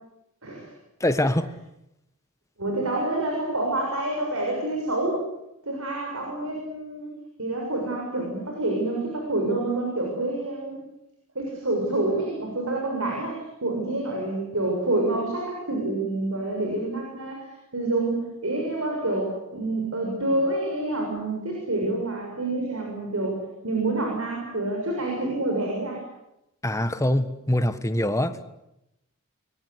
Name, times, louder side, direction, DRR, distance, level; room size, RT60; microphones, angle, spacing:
voice 1, 1.0-1.5 26.6-28.5, left 1 dB, 15° left, 10 dB, 1.4 m, -24 dB
voice 2, 2.6-5.2 5.6-7.1 7.4-10.8 11.3-23.4 23.6-26.0, right 2 dB, 70° right, 0 dB, 6.8 m, -27 dB
28.5 x 22.5 x 8.2 m, 0.87 s
head